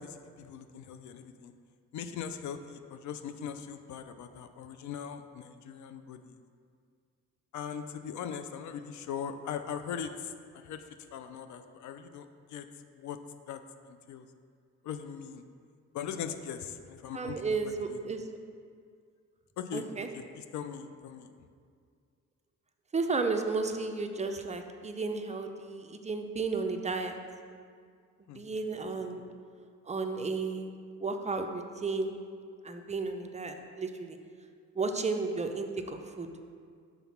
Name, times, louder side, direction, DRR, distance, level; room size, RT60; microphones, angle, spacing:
voice 1, 0.0-1.5 1.9-6.4 7.5-10.9 11.1-12.7 13.0-13.2 13.5-13.6 13.9-14.3 14.8-15.4 15.9-18.0 19.6-19.9 20.1-20.2 20.5-21.3 28.3-28.4 28.9-29.1, left 7 dB, 70° left, 9 dB, 0.5 m, -40 dB
voice 2, 17.1-18.4 19.7-20.1 22.9-27.2 28.3-29.2 29.9-30.7 31.0-32.1 32.6-34.2 34.8-36.3, right 4 dB, 25° right, 5 dB, 0.5 m, -33 dB
5.9 x 4.0 x 5.7 m, 2.1 s
cardioid pair, 90°, 30 cm